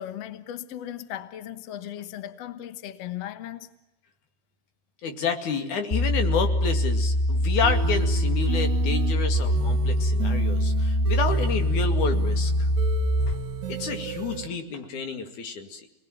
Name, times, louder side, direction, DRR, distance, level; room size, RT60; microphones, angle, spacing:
voice 1, 0.0-3.7, left 11 dB, 70° left, 1.5 m, -37 dB
voice 2, 5.0-12.7 13.3-13.4 13.7-15.9, left 5 dB, 55° left, 3.3 m, -30 dB
sound 1, 5.9-13.3, left 1 dB, 25° left, 1.0 m, -24 dB
sound 2, 7.6-14.5, right 10 dB, 55° right, 2.5 m, -33 dB
29.0 x 20.0 x 9.2 m
omnidirectional pair, 4.7 m